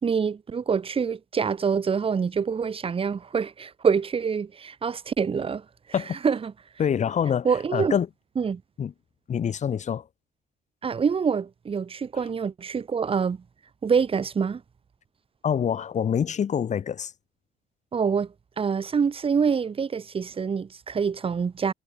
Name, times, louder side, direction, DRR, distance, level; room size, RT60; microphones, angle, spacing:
voice 1, 0.0-5.6 6.2-6.5 7.4-8.0 8.4-8.6 10.8-13.4 13.8-14.6 17.9-18.3 18.6-21.7, right 6 dB, 35° right, 4.0 m, -25 dB
voice 2, 6.8-8.1 8.8-8.9 9.3-10.1 15.4-17.1, left 8 dB, 45° left, 4.4 m, -26 dB
cardioid pair, 110°, 17 cm